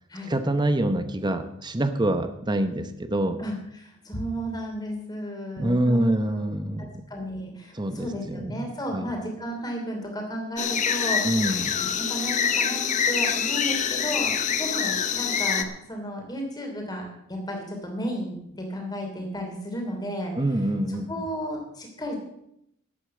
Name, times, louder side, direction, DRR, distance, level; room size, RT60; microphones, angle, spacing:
voice 1, 0.3-3.4 5.6-7.0 7.7-8.7 8.9-9.1 11.2-11.7 20.3-21.1, right 1 dB, 20° right, 9 dB, 0.8 m, -25 dB
voice 2, 3.4-11.6 12.0-17.0 17.3-20.3 20.9-22.2, equal, 20° left, 1 dB, 3.1 m, -33 dB
sound 1, 10.6-15.6, left 7 dB, 35° left, 0.8 m, -25 dB
11.5 x 8.3 x 7.7 m, 0.79 s
head